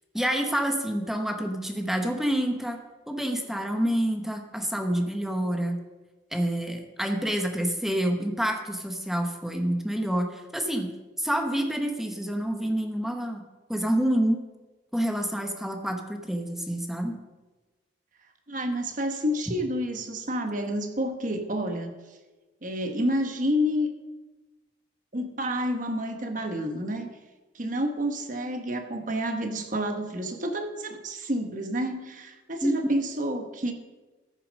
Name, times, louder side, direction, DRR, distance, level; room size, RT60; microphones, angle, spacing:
voice 1, 0.1-2.8 3.1-5.8 6.3-10.9 11.2-13.4 13.7-14.4 14.9-17.2 32.6-32.9, right 1 dB, ahead, 4 dB, 1.0 m, -27 dB
voice 2, 18.5-21.9 22.6-23.9 25.1-27.1 27.5-33.7, equal, 45° right, 6 dB, 1.2 m, -29 dB
14.0 x 6.9 x 5.2 m, 1.2 s
head